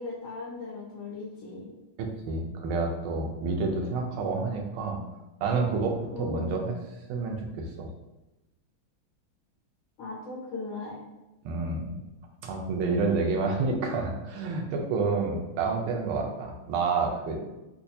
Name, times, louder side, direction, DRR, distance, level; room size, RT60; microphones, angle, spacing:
voice 1, 0.0-1.7 6.1-6.5 10.0-11.0, left 3 dB, 70° left, -6 dB, 1.6 m, -38 dB
voice 2, 2.0-5.0 5.4-6.8 7.1-7.9 11.4-12.0 12.4-17.4, right 4 dB, 85° right, 2 dB, 1.5 m, -29 dB
4.4 x 2.2 x 2.6 m, 1.0 s
omnidirectional pair, 2.4 m